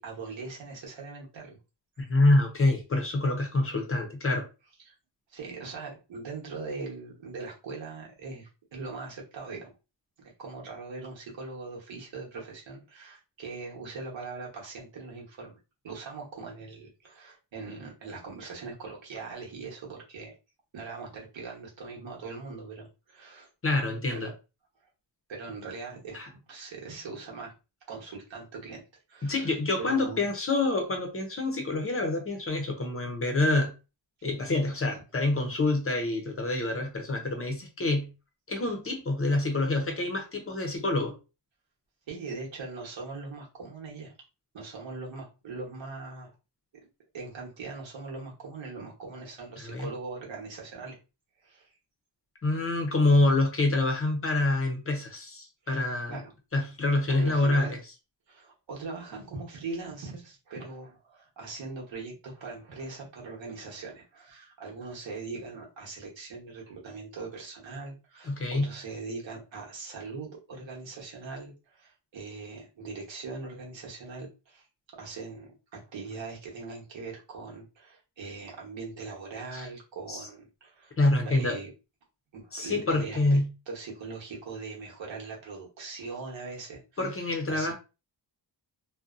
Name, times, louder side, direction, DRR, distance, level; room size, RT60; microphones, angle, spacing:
voice 1, 0.0-1.6 2.0-2.1 4.8-4.9 5.3-9.8 10.4-15.6 15.8-20.3 20.7-23.5 24.1-24.3 25.3-26.2 26.5-27.5 27.9-28.8 29.1-30.3 42.1-44.1 44.5-46.3 47.1-51.0 51.4-51.7 55.6-55.8 56.1-56.3 57.1-57.8 58.3-74.7 74.9-81.7 82.3-83.2 83.7-87.7, right 4 dB, 90° right, 1.0 m, -41 dB
voice 2, 2.1-4.4 23.6-24.3 26.1-26.3 29.2-33.7 34.2-38.1 38.5-41.2 49.6-49.9 52.4-56.2 56.5-57.8 68.2-68.7 79.5-79.7 80.1-80.2 81.0-81.6 82.5-83.5 87.0-87.7, left 2 dB, 30° left, 0.6 m, -26 dB
2.6 x 2.1 x 2.4 m
wide cardioid pair, 145°, 44 cm